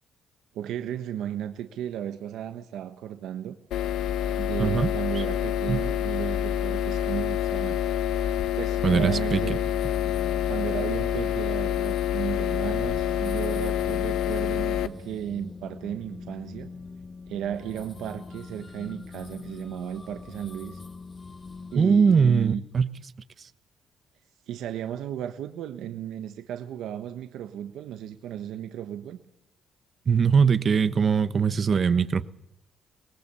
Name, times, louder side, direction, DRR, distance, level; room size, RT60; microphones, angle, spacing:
voice 1, 0.5-3.5 4.4-7.8 8.6-9.6 10.5-16.7 17.3-20.8 21.7-22.6 24.5-29.2, right 10 dB, 85° right, 1.2 m, -34 dB
sound 1, 3.7-14.9, left 10 dB, 85° left, 1.0 m, -27 dB
voice 2, 4.6-4.9 5.7-5.8 8.8-9.4 21.7-22.9 30.1-32.2, right 6 dB, 45° right, 1.1 m, -21 dB
sound 2, 8.9-21.8, left 4 dB, 35° left, 1.7 m, -43 dB
24.0 x 19.0 x 7.0 m
cardioid pair, 90°, 0 cm